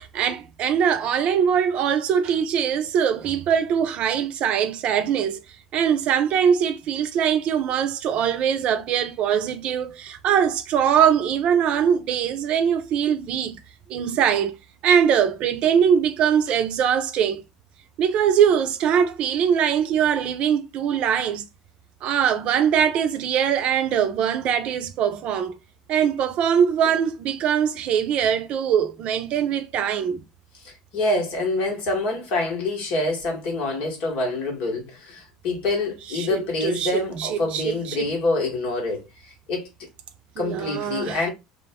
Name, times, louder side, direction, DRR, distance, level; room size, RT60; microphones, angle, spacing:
voice 1, 0.0-5.4 5.7-13.6 13.9-14.6 14.8-17.4 18.0-21.5 22.0-25.6 25.9-30.2 36.1-38.1 40.4-41.2, right 8 dB, 55° right, 0.5 m, -22 dB
voice 2, 30.6-39.7 40.4-41.3, left 2 dB, 65° left, 1.3 m, -26 dB
2.4 x 2.0 x 3.4 m
hypercardioid pair, 75°, 2 cm